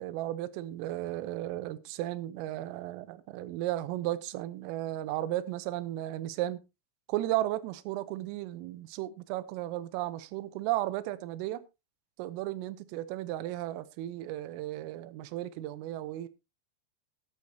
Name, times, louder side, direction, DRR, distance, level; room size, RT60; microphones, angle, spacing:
voice 1, 0.0-6.6 7.1-11.6 12.2-16.3, right 14 dB, 80° right, 3.4 m, -34 dB
13.0 x 13.0 x 2.8 m
omnidirectional pair, 5.9 m